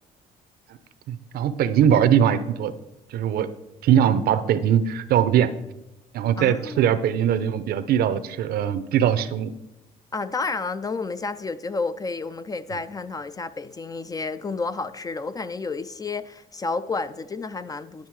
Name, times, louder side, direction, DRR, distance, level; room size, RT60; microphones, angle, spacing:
voice 1, 1.1-2.7 3.1-3.5 3.8-5.5 6.1-9.5, right 9 dB, 65° right, 0.6 m, -21 dB
voice 2, 6.4-7.0 10.1-18.1, left 4 dB, 20° left, 0.3 m, -31 dB
10.5 x 5.4 x 4.7 m
cardioid pair, 110°, 17 cm